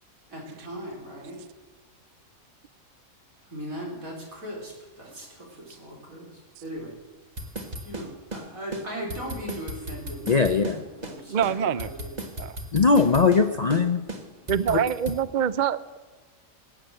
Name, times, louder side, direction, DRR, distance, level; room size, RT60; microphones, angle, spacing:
voice 1, 0.3-1.4 3.4-6.9 7.8-12.2, equal, 75° right, -2 dB, 4.9 m, -38 dB
sound 1, 7.4-8.5 8.7-8.8 9.1-10.8 11.0-11.2 11.4-13.5 13.7-13.8 14.1-15.2, right 1 dB, 30° right, 1.6 m, -36 dB
voice 2, 10.3-10.8 12.7-14.0 14.7-14.8, left 5 dB, 40° left, 7 dB, 0.6 m, -20 dB
voice 3, 11.3-11.9 12.4-12.6 14.5-16.0, right 8 dB, 55° right, 16 dB, 0.5 m, -25 dB
18.0 x 9.1 x 7.7 m, 1.2 s
omnidirectional pair, 1.5 m